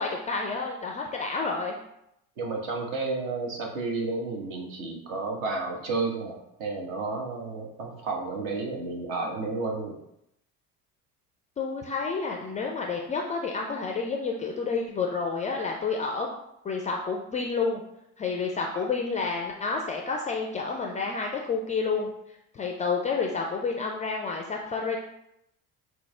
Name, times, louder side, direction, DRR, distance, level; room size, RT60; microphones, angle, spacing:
voice 1, 0.0-1.8 11.6-16.3 16.6-17.8 18.2-22.1 22.5-25.0, left 4 dB, 20° left, 1 dB, 0.3 m, -29 dB
voice 2, 2.4-10.0 18.7-18.9, right 3 dB, 60° right, 1 dB, 1.1 m, -32 dB
6.0 x 2.0 x 3.2 m, 0.81 s
figure-of-eight pair, 60°, 46 cm